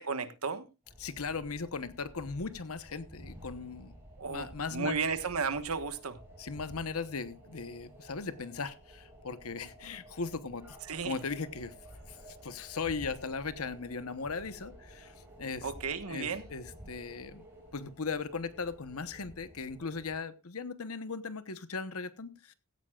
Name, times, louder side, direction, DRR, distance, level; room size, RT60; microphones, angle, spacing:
voice 1, 0.1-0.7 4.2-6.2 10.9-11.2 15.6-16.4, right 5 dB, 85° right, 1.4 m, -34 dB
sound 1, 0.8-20.2, right 1 dB, 10° right, 6.1 m, -52 dB
voice 2, 1.0-3.9 4.3-5.0 6.4-10.8 11.0-11.7 12.1-15.7 16.1-17.5 17.7-22.5, left 4 dB, 80° left, 1.0 m, -38 dB
16.5 x 13.5 x 2.4 m
head